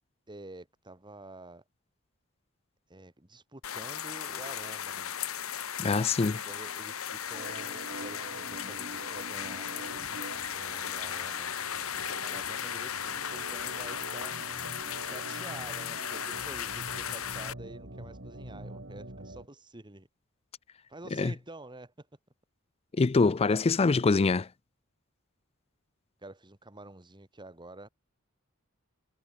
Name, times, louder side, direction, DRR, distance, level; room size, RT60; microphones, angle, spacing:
voice 1, 0.3-1.6 2.9-5.1 6.4-9.7 10.5-14.4 15.0-20.1 20.9-22.1 26.2-27.9, right 2 dB, 20° right, 2.2 m, -48 dB
sound 1, 3.6-17.5, left 9 dB, 90° left, 1.7 m, -36 dB
voice 2, 5.8-6.4 21.2-21.3 23.0-24.5, left 4 dB, 30° left, 0.4 m, -24 dB
Organ, 7.3-19.5, right 2 dB, 55° right, 4.5 m, -45 dB
head